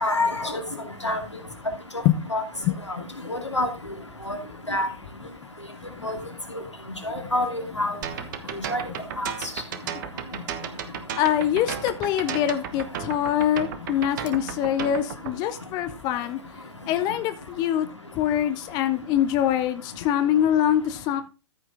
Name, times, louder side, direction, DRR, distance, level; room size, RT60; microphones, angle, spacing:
voice 1, 0.0-0.6 1.0-1.2 2.3-2.4 3.3-3.7 4.3-4.4 4.7-4.9 6.0-6.2 7.1-8.0 8.7-8.8 9.2-9.3, left 2 dB, 85° left, 5 dB, 2.5 m, -26 dB
sound 1, 8.0-15.3, right 9 dB, 45° right, 1.3 m, -34 dB
voice 2, 11.1-16.4 16.9-17.9 18.1-21.2, left 11 dB, 25° left, 11 dB, 0.8 m, -24 dB
14.0 x 5.9 x 3.6 m, 0.30 s
figure-of-eight pair, 115°, 15 cm